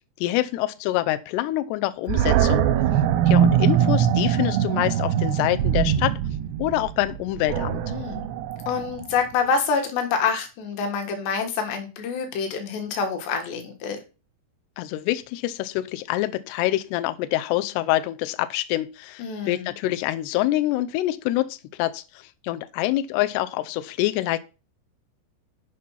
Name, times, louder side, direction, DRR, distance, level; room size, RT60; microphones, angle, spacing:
voice 1, 0.2-2.6 3.3-6.2 6.6-7.8 14.8-24.4, left 15 dB, 90° left, 2.4 m, -26 dB
Animal, 2.1-9.2, right 10 dB, 85° right, 2.6 m, -22 dB
voice 2, 7.9-8.3 8.7-14.0 19.2-19.7, left 5 dB, 70° left, 3.5 m, -26 dB
8.5 x 5.3 x 5.6 m
omnidirectional pair, 5.4 m